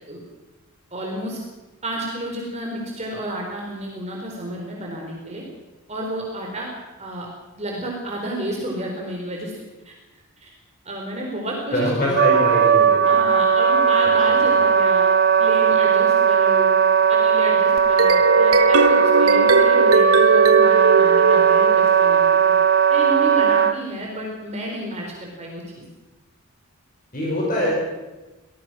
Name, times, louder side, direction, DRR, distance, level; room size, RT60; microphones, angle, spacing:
voice 1, 0.9-1.4 1.8-5.4 5.9-6.7 7.0-7.3 7.5-9.5 9.8-9.9 10.4-10.5 10.8-12.4 13.1-15.1 15.4-16.8 17.1-22.3 22.9-25.8, right 1 dB, 30° right, -1 dB, 4.1 m, -31 dB
voice 2, 11.7-13.0 14.3-14.4 27.1-27.7, left 1 dB, 40° left, -3 dB, 5.8 m, -23 dB
Wind instrument woodwind instrument, 12.1-23.7, right 6 dB, 45° right, 0.8 m, -17 dB
sound 1, 17.8-22.1, right 3 dB, 75° right, 1.5 m, -19 dB
25.5 x 18.5 x 6.3 m, 1.1 s
head